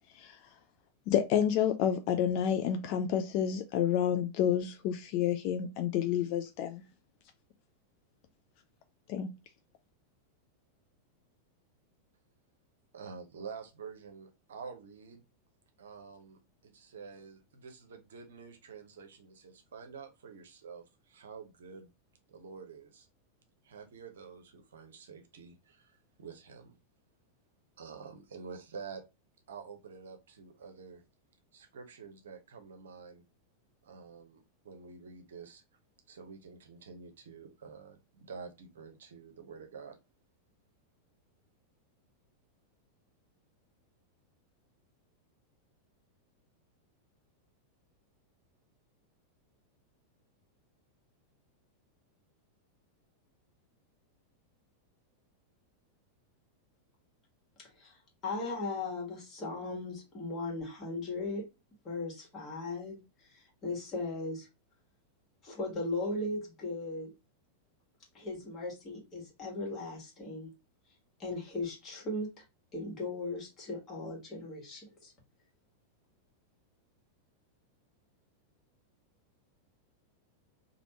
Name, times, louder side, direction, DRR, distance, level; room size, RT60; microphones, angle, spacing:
voice 1, 0.1-0.6 1.1-6.8 9.1-9.3, left 9 dB, 45° left, 0.3 m, -29 dB
voice 2, 12.9-15.2 15.8-21.9 22.3-23.1 23.6-26.8 27.8-29.0 29.5-31.0 31.5-33.2 33.8-35.6 36.1-40.0, right 5 dB, 65° right, 0.7 m, -48 dB
voice 3, 57.6-58.0 58.2-61.4 61.8-64.5 65.4-67.1 68.1-70.5 71.2-72.3 72.7-75.1, left 2 dB, 30° left, 1.5 m, -37 dB
3.3 x 2.4 x 2.8 m
figure-of-eight pair, 90°, 0 cm